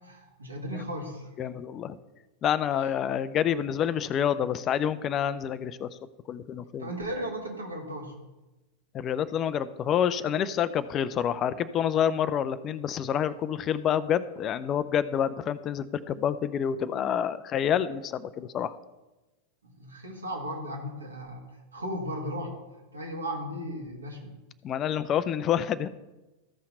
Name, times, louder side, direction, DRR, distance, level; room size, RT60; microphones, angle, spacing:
voice 1, 0.0-1.5 2.8-2.9 6.8-8.1 19.6-24.3, equal, 75° right, 1 dB, 2.0 m, -36 dB
voice 2, 1.4-2.0 2.4-5.9 6.3-6.9 8.9-18.8 24.6-25.9, left 9 dB, 30° left, 14 dB, 0.4 m, -28 dB
14.5 x 5.7 x 4.2 m, 1.1 s
figure-of-eight pair, 90°, 0 cm